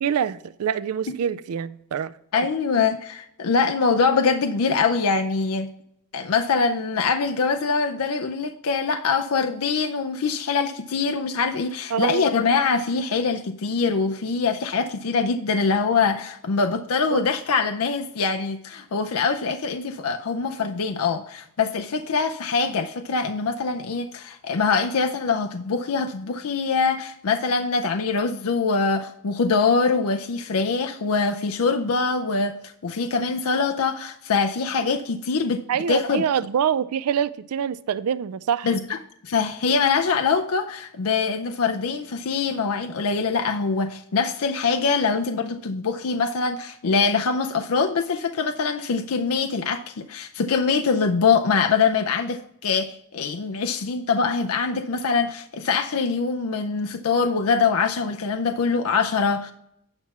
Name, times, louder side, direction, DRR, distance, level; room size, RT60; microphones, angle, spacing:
voice 1, 0.0-2.1 11.9-12.4 17.1-17.2 35.7-38.8, right 8 dB, 85° right, 0.4 m, -25 dB
voice 2, 2.3-5.7 6.1-32.5 32.8-35.6 35.9-36.2 38.6-39.0 39.2-59.5, left 5 dB, 75° left, 0.5 m, -23 dB
9.0 x 5.9 x 4.2 m
head